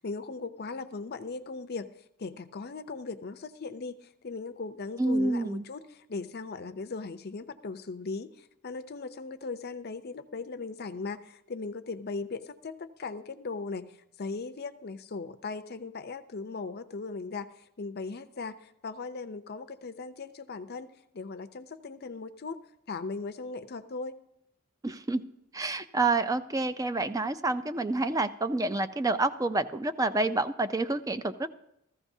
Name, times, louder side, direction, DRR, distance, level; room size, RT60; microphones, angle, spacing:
voice 1, 0.0-1.9 2.2-4.0 4.2-8.3 8.6-13.9 14.2-17.5 17.8-20.9 21.1-22.6 22.9-24.2, left 4 dB, 50° left, 10 dB, 0.6 m, -38 dB
voice 2, 5.0-5.6 24.8-25.2 25.5-31.5, right 2 dB, 15° right, 11 dB, 0.4 m, -28 dB
14.5 x 14.5 x 2.7 m, 0.78 s
head